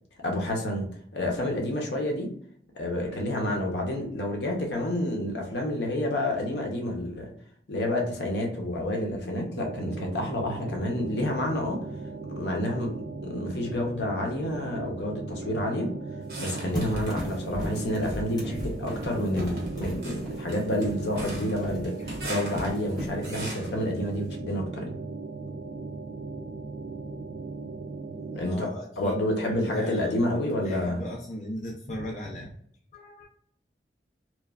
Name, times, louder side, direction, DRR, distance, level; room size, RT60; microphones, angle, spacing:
voice 1, 0.2-0.9 1.1-2.3 2.7-7.3 7.7-11.8 12.4-12.9 13.2-15.9 16.4-18.5 18.8-21.9 22.2-25.0 28.3-28.7 29.0-31.0, left 1 dB, 75° left, 1 dB, 0.7 m, -29 dB
sound 1, 9.6-28.4, right 3 dB, 75° right, 0.3 m, -38 dB
sound 2, 16.3-17.2 17.6-18.2 18.9-23.8, right 1 dB, 60° right, 1.0 m, -40 dB
sound 3, 16.7-23.5, right 1 dB, 20° left, 0.9 m, -38 dB
voice 2, 28.4-32.5 32.9-33.3, equal, 40° left, -2 dB, 0.4 m, -38 dB
3.0 x 2.2 x 2.3 m, 0.63 s
head